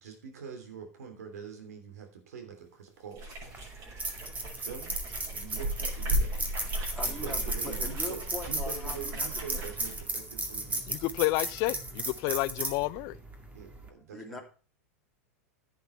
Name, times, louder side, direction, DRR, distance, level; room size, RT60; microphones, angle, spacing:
voice 1, 0.0-3.3 4.6-4.9 5.3-6.4 7.0-10.8 13.5-14.4, right 6 dB, 80° right, 3.1 m, -44 dB
sound 1, 3.1-10.0, right 1 dB, 45° right, 6.5 m, -36 dB
sound 2, 3.4-13.9, right 2 dB, 15° right, 2.2 m, -36 dB
voice 2, 6.9-9.7 14.1-14.4, left 2 dB, 5° left, 2.8 m, -41 dB
voice 3, 10.9-13.2, left 19 dB, 45° left, 0.5 m, -30 dB
10.5 x 8.6 x 4.5 m
hypercardioid pair, 110°, 8 cm